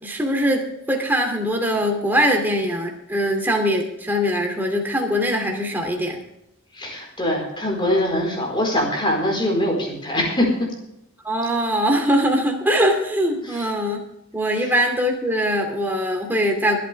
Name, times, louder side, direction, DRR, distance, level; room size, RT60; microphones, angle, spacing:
voice 1, 0.0-6.2 11.2-14.0 14.3-16.8, equal, 10° right, 1 dB, 2.6 m, -22 dB
voice 2, 6.8-10.5, left 1 dB, 25° left, 0 dB, 4.5 m, -22 dB
25.0 x 8.7 x 3.5 m, 0.85 s
head